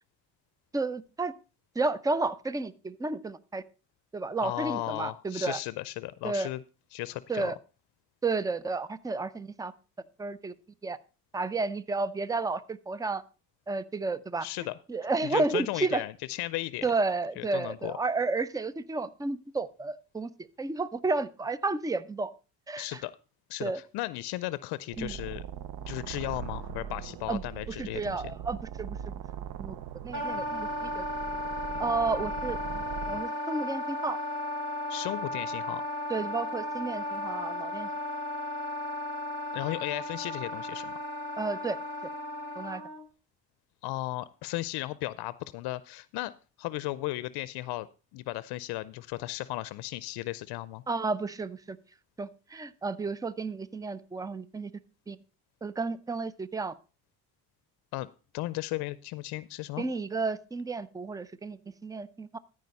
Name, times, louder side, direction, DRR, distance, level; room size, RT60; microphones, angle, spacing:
voice 1, 0.7-1.3 1.8-3.6 4.1-5.6 6.2-6.5 7.3-7.6 8.2-9.7 10.2-10.5 10.8-11.0 11.3-13.2 13.7-14.5 14.9-16.0 16.8-20.3 20.6-22.3 22.7-23.0 23.6-23.8 25.0-25.1 27.3-27.4 27.7-29.2 29.6-29.8 30.0-31.0 31.8-32.6 33.1-34.2 36.1-37.9 41.4-41.8 42.6-42.8 50.9-51.8 52.2-54.7 55.1-55.2 55.6-56.7 59.8-62.4, right 3 dB, 10° right, 17 dB, 0.5 m, -32 dB
voice 2, 4.4-6.6 6.9-7.5 14.4-14.7 15.2-16.9 17.4-18.0 22.8-23.1 23.5-25.4 25.9-28.2 34.9-35.8 39.5-40.9 43.8-46.3 46.6-47.9 48.1-50.8 57.9-58.1 58.3-59.8, left 18 dB, 80° left, 17 dB, 0.5 m, -35 dB
sound 1, 24.9-33.2, right 8 dB, 80° right, 0.9 m, -41 dB
Wind instrument woodwind instrument, 30.1-43.0, left 1 dB, 50° right, 4.1 m, -35 dB
13.5 x 4.9 x 5.3 m, 0.34 s
cardioid pair, 95°, 39 cm